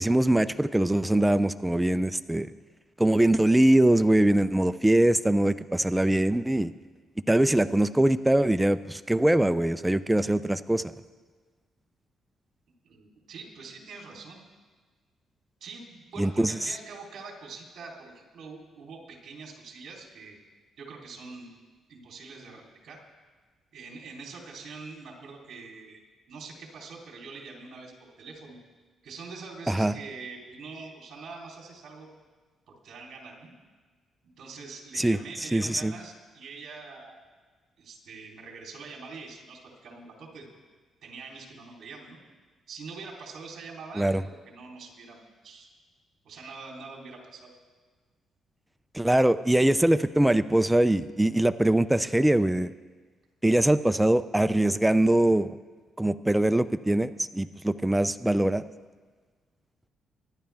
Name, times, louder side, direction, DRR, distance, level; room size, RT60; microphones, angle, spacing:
voice 1, 0.0-2.5 3.0-6.7 7.3-10.9 16.2-16.5 29.7-29.9 35.0-35.2 35.5-35.9 44.0-44.2 48.9-52.7 53.4-55.6 56.0-58.6, right 1 dB, 5° right, 12 dB, 0.4 m, -22 dB
voice 2, 12.8-14.4 15.6-20.4 20.8-21.5 21.9-23.0 23.7-26.0 26.3-28.6 29.0-32.1 32.7-33.5 34.4-37.2 37.8-40.5 41.0-42.2 42.7-45.7 46.2-47.5, right 4 dB, 60° right, 0 dB, 3.5 m, -44 dB
23.0 x 11.5 x 3.5 m, 1.4 s
cardioid pair, 110°, 0 cm